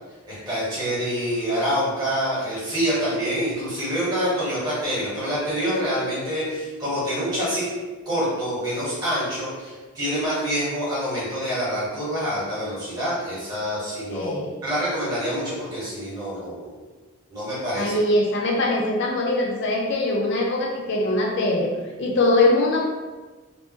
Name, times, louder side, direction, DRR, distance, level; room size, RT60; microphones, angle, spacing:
voice 1, 0.3-7.7 8.0-16.7 17.3-18.0, equal, 20° right, -9 dB, 1.5 m, -26 dB
voice 2, 14.1-14.5 17.7-21.7 22.0-22.8, left 2 dB, 55° left, 0 dB, 0.4 m, -22 dB
3.4 x 2.5 x 3.0 m, 1.3 s
head